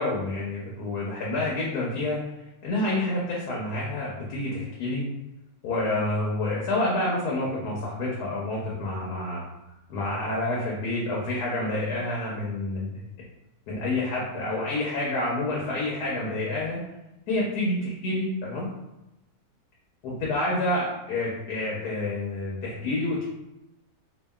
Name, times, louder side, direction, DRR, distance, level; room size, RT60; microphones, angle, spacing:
voice 1, 0.0-2.2 2.6-5.1 5.6-9.4 9.9-13.0 13.7-16.8 17.3-18.7 20.0-23.3, left 2 dB, 90° left, -4 dB, 1.2 m, -28 dB
2.7 x 2.5 x 2.2 m, 0.94 s
omnidirectional pair, 1.6 m